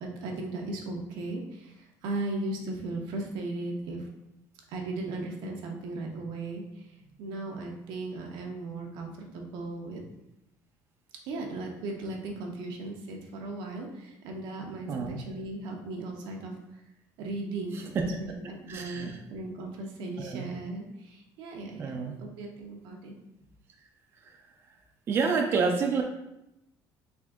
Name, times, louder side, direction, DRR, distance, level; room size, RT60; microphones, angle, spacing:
voice 1, 0.0-4.1 4.7-10.0 11.2-16.5 17.2-23.2, right 2 dB, 80° right, 1 dB, 0.7 m, -37 dB
voice 2, 14.9-15.2 17.7-18.0 18.7-19.2 20.2-20.5 21.8-22.2 25.1-26.0, right 5 dB, 30° right, 2 dB, 0.3 m, -28 dB
3.5 x 2.5 x 3.5 m, 0.87 s
cardioid pair, 155°, 8 cm